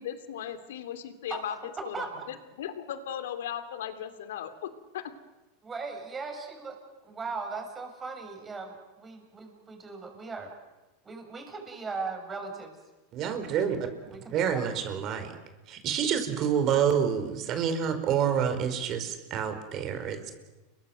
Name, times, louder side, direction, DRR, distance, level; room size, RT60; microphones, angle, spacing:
voice 1, 0.0-5.1, left 9 dB, 85° left, 10 dB, 3.0 m, -37 dB
voice 2, 5.6-6.8 7.0-10.5 11.0-12.8 13.3-13.4 14.1-14.7, right 4 dB, 15° right, 3 dB, 7.3 m, -38 dB
voice 3, 13.1-13.9 14.3-15.3 15.7-20.3, right 8 dB, 40° right, 8 dB, 4.9 m, -28 dB
30.0 x 23.0 x 7.9 m, 1.1 s
supercardioid pair, 135°, 0 cm